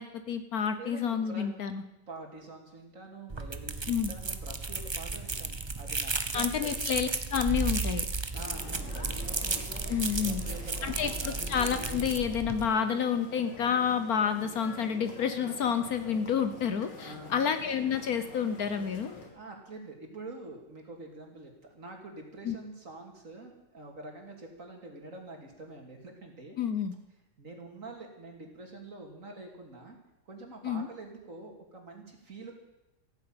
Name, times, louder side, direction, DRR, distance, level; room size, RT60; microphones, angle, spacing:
voice 1, 0.0-1.8 3.9-4.1 6.3-8.0 9.9-10.4 10.8-19.1 22.4-22.6 26.6-26.9 30.6-30.9, left 7 dB, 60° left, 10 dB, 1.3 m, -29 dB
voice 2, 0.8-1.5 2.1-6.7 8.3-9.3 10.2-11.5 17.0-17.4 19.3-26.6 27.4-30.0 30.3-32.5, right 2 dB, 45° right, 2 dB, 3.1 m, -46 dB
sound 1, 3.3-12.7, right 3 dB, 25° right, 0.5 m, -34 dB
sound 2, 8.3-19.3, left 3 dB, 80° left, 2.9 m, -46 dB
15.5 x 9.7 x 8.8 m, 0.95 s
omnidirectional pair, 1.9 m